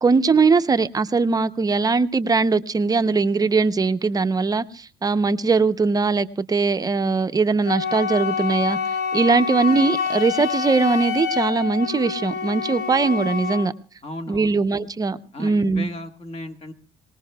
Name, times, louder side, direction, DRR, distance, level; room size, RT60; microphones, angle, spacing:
voice 1, 0.0-8.8 9.1-13.7 14.3-15.9, right 4 dB, 20° right, 12 dB, 0.6 m, -20 dB
Wind instrument woodwind instrument, 7.6-13.7, left 6 dB, 70° left, 1.8 m, -27 dB
voice 2, 14.0-14.6 15.3-16.7, left 1 dB, 35° left, 6 dB, 1.5 m, -35 dB
24.0 x 19.0 x 2.3 m, 0.40 s
cardioid pair, 110°, 17 cm